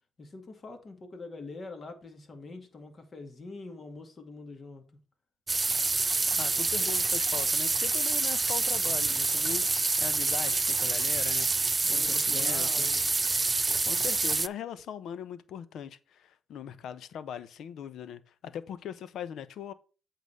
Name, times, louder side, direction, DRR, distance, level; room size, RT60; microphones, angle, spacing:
voice 1, 0.2-4.8 11.8-13.1, left 3 dB, 40° left, 2.2 m, -44 dB
sound 1, 5.5-14.5, right 3 dB, 25° right, 0.4 m, -27 dB
voice 2, 6.3-9.7 10.0-11.5 11.9-12.9 13.9-19.7, left 8 dB, 70° left, 0.9 m, -40 dB
8.4 x 4.0 x 6.7 m
cardioid pair, 90°, 0 cm